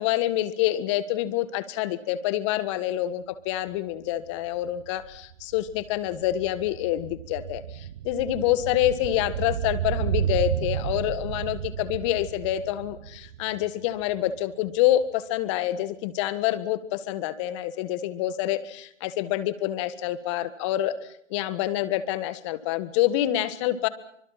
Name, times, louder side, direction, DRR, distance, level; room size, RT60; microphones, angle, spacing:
voice 1, 0.0-20.9 21.3-23.9, left 13 dB, 25° left, 13 dB, 1.5 m, -27 dB
sound 1, 3.7-3.8 4.0-14.4 14.7-14.8, right 10 dB, 30° right, 1.1 m, -33 dB
26.5 x 25.0 x 5.8 m, 0.74 s
figure-of-eight pair, 140°, 39 cm